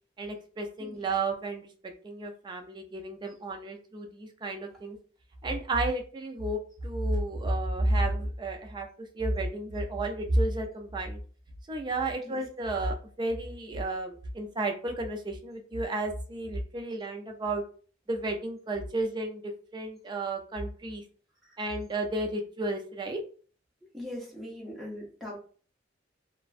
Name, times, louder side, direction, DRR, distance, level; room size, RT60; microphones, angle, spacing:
voice 1, 0.2-1.7 2.0-5.0 5.4-8.9 9.2-11.2 11.7-17.6 18.1-21.0 21.6-23.2, right 2 dB, 25° right, 3 dB, 0.3 m, -32 dB
voice 2, 23.9-25.4, left 1 dB, ahead, -4 dB, 0.7 m, -40 dB
2.4 x 2.1 x 2.4 m, 0.42 s
head